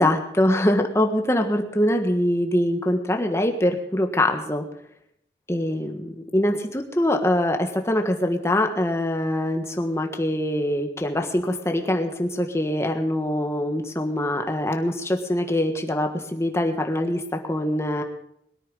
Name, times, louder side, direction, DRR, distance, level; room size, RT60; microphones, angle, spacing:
voice 1, 0.0-4.6 5.5-6.6 7.0-7.6 7.9-17.2 17.5-18.0, left 1 dB, 15° left, 4 dB, 1.5 m, -23 dB
21.5 x 9.7 x 5.5 m, 0.74 s
head